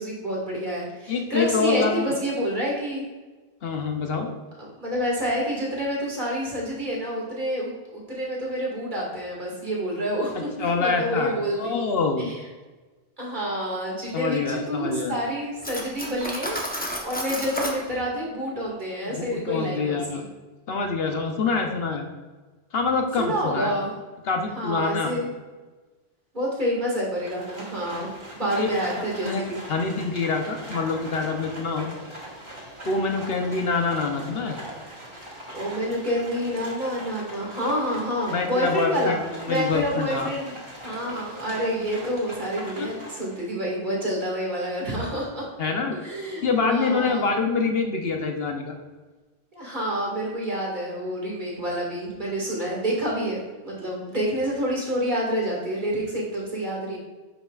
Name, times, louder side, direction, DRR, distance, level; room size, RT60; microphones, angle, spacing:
voice 1, 0.0-3.0 4.6-11.8 12.3-12.4 13.2-16.6 17.0-20.2 23.2-23.9 24.5-25.3 26.3-29.6 35.5-39.2 39.5-40.5 40.8-45.4 46.0-47.3 49.5-57.0, equal, 50° right, -4 dB, 2.0 m, -28 dB
voice 2, 1.1-2.1 3.6-4.3 10.3-12.3 14.1-15.1 19.1-20.2 20.7-22.1 22.7-23.7 24.2-25.1 28.6-28.9 29.2-31.9 32.8-34.6 38.3-40.3 42.8-42.9 45.6-46.0 46.4-48.8, left 4 dB, 70° left, 3 dB, 1.0 m, -26 dB
Cutlery silverware, 15.6-17.8, equal, 10° left, 0.7 m, -31 dB
Livestock farm animals working animals, 27.2-43.5, right 1 dB, 30° right, 1.5 m, -41 dB
9.7 x 5.7 x 2.4 m, 1.3 s
omnidirectional pair, 1.1 m